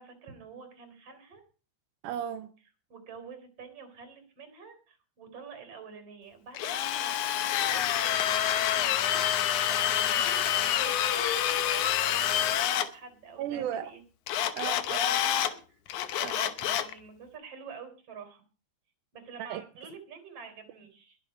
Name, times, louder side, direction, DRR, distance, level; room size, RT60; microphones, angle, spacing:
voice 1, 0.0-1.4 2.9-14.0 15.2-15.6 16.2-18.4 19.1-21.2, right 5 dB, 50° right, 4.7 m, -47 dB
voice 2, 2.0-2.5 13.4-13.9 14.5-15.2 16.2-16.5 19.4-19.6, right 10 dB, 90° right, 2.3 m, -35 dB
Drill, 6.5-12.9 14.3-15.5 15.9-16.9, left 11 dB, 80° left, 2.4 m, -27 dB
21.5 x 7.3 x 5.2 m
omnidirectional pair, 3.5 m